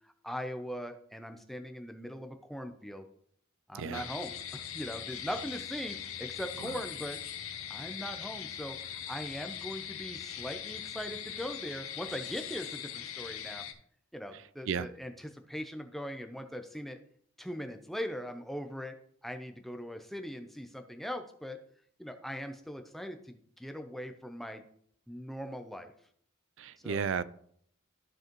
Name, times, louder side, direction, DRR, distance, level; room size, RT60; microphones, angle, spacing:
voice 1, 0.2-3.1 3.7-7.2 7.7-13.7 14.1-17.0 17.4-19.0 19.2-21.6 22.0-24.6 25.1-25.9 26.8-27.1, equal, ahead, 6 dB, 0.6 m, -40 dB
voice 2, 3.7-4.1 6.6-6.7 14.7-14.9 26.6-27.2, right 6 dB, 65° right, 16 dB, 0.4 m, -33 dB
sound 1, 3.9-13.7, left 9 dB, 90° left, 0.8 m, -41 dB
13.5 x 4.7 x 3.1 m, 0.64 s
head